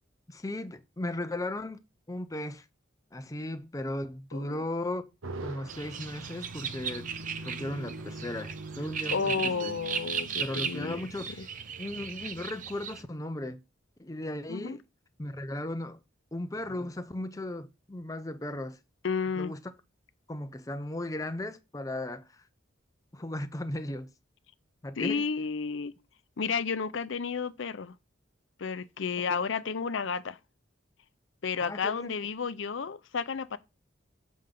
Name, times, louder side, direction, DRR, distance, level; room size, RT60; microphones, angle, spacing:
voice 1, 0.3-1.8 2.1-2.7 3.1-5.0 5.4-9.7 10.4-11.4 11.8-13.6 14.0-14.8 15.2-16.0 16.3-18.8 19.4-19.6 20.3-22.4 23.1-24.1 24.8-25.2 29.2-29.4 31.6-32.1, left 1 dB, 15° left, 0.6 m, -36 dB
sound 1, 5.2-13.0, right 2 dB, 90° right, 0.9 m, -44 dB
sound 2, 5.7-13.0, right 7 dB, 40° right, 0.5 m, -37 dB
voice 2, 9.1-11.0 11.4-11.5 14.5-14.8 19.0-19.5 25.0-25.9 26.4-27.9 28.6-30.4 31.4-33.6, left 5 dB, 70° left, 0.6 m, -32 dB
7.7 x 5.1 x 3.7 m
head